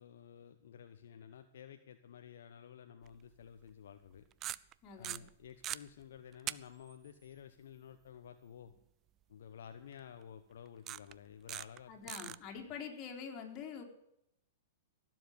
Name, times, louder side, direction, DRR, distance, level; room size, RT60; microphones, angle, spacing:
voice 1, 0.0-4.2 4.9-8.7 9.3-12.4, left 8 dB, 75° left, 7 dB, 1.1 m, -53 dB
sound 1, 3.1-3.2 4.3-4.7 5.0-5.8 6.5-6.6 6.9-7.0 9.9-10.0 10.9-11.1 11.5-11.8 12.1-12.4, right 13 dB, 30° right, 0.5 m, -40 dB
voice 2, 4.8-5.2 11.9-13.8, left 6 dB, 35° left, 2 dB, 4.1 m, -45 dB
17.0 x 7.8 x 8.1 m, 0.78 s
hypercardioid pair, 120°, 0 cm